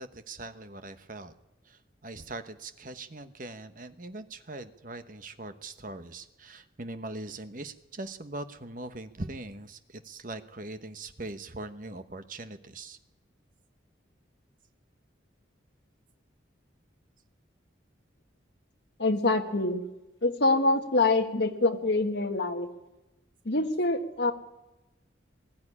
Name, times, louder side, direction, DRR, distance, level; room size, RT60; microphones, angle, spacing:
voice 1, 0.0-1.3 1.7-13.0, right 2 dB, 45° right, 9 dB, 1.1 m, -41 dB
voice 2, 19.0-19.8 20.2-22.7 23.5-24.3, left 2 dB, 65° left, 5 dB, 1.8 m, -25 dB
21.0 x 13.5 x 9.9 m, 0.99 s
head